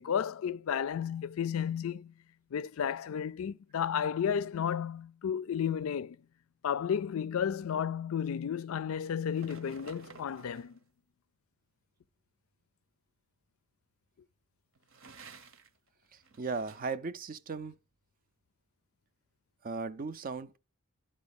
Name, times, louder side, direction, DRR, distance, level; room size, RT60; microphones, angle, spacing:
voice 1, 0.0-2.1 2.5-6.2 6.6-10.8, left 8 dB, 65° left, 0.4 m, -33 dB
sound 1, 9.3-10.8 14.7-15.8 16.1-17.0, right 5 dB, 60° right, 1.0 m, -52 dB
voice 2, 16.4-17.8 19.6-20.6, right 4 dB, 40° right, 0.5 m, -36 dB
11.5 x 4.2 x 7.0 m
head